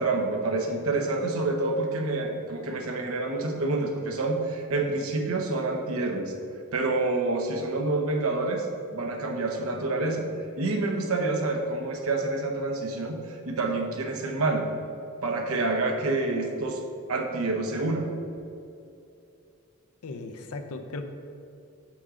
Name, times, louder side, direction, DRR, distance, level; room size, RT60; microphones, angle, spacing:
voice 1, 0.0-6.3 6.7-10.3 10.6-14.7 15.2-16.8 17.1-18.1, right 2 dB, 75° right, 2 dB, 0.9 m, -28 dB
voice 2, 20.0-21.0, left 3 dB, 85° left, 7 dB, 0.6 m, -37 dB
6.0 x 3.7 x 6.1 m, 2.6 s
head